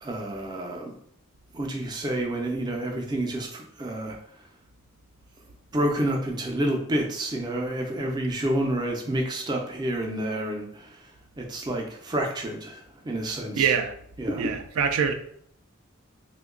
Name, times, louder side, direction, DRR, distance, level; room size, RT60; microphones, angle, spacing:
voice 1, 0.0-0.9 1.5-4.2 5.7-11.0 11.4-13.7 14.2-14.5, right 1 dB, 20° right, 1 dB, 0.4 m, -29 dB
voice 2, 13.6-13.9 14.4-15.1, right 7 dB, 85° right, 7 dB, 0.4 m, -24 dB
2.9 x 2.2 x 3.6 m, 0.67 s
head